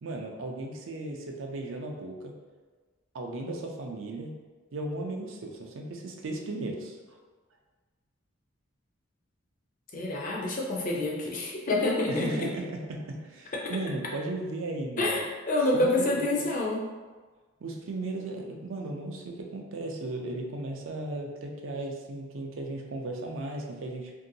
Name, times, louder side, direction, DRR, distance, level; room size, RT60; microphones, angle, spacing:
voice 1, 0.0-2.3 3.1-4.3 4.7-7.2 12.1-15.2 15.7-16.4 17.6-24.1, right 2 dB, 65° right, 1 dB, 0.4 m, -36 dB
voice 2, 9.9-12.3 15.0-16.8, left 2 dB, 40° left, -2 dB, 0.5 m, -27 dB
2.9 x 2.7 x 2.6 m, 1.4 s
head